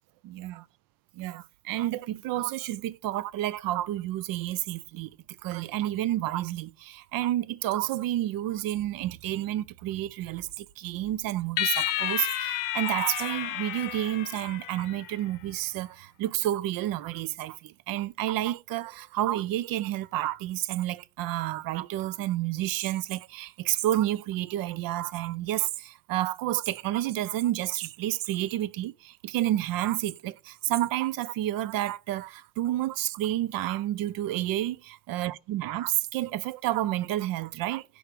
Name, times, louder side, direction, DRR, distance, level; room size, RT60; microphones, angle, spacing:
voice 1, 0.2-0.6 1.2-37.9, right 14 dB, 75° right, 0.6 m, -30 dB
sound 1, 11.6-15.1, left 13 dB, 70° left, 0.8 m, -31 dB
6.2 x 4.6 x 6.6 m
cardioid pair, 175°, 34 cm